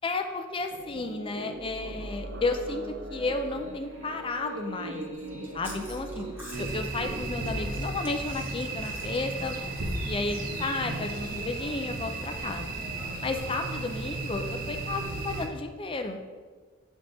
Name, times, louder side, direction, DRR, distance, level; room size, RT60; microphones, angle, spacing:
voice 1, 0.0-2.8 3.1-6.3 6.6-9.6 10.1-12.7 13.2-16.2, left 3 dB, 25° left, 6 dB, 0.4 m, -33 dB
sound 1, 0.7-7.8, right 1 dB, 75° right, 0.8 m, -39 dB
Chewing mastication, 5.1-10.5, left 1 dB, 10° right, 1.0 m, -48 dB
sound 2, 6.5-15.5, right 2 dB, 45° right, 0.8 m, -34 dB
7.7 x 4.1 x 3.4 m, 1.5 s
head